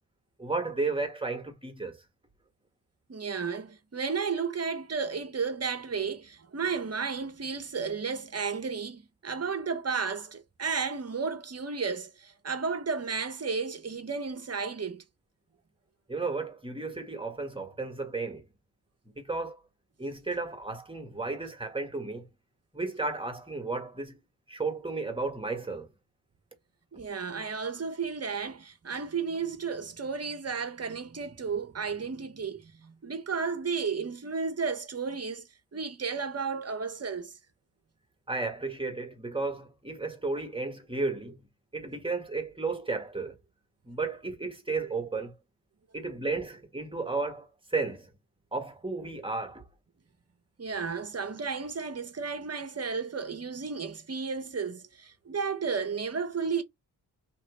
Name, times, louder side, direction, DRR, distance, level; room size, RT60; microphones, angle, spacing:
voice 1, 0.4-2.0 16.1-18.5 19.2-19.6 20.0-22.3 22.7-24.2 24.5-25.9 38.3-41.4 41.7-43.4 43.8-45.4 45.9-48.1 48.5-49.6, right 3 dB, 10° right, 1.5 m, -33 dB
voice 2, 3.1-15.0 26.9-35.5 35.7-37.3 50.6-56.6, right 5 dB, 35° right, 1.0 m, -33 dB
2.9 x 2.9 x 3.0 m
cardioid pair, 45°, 43 cm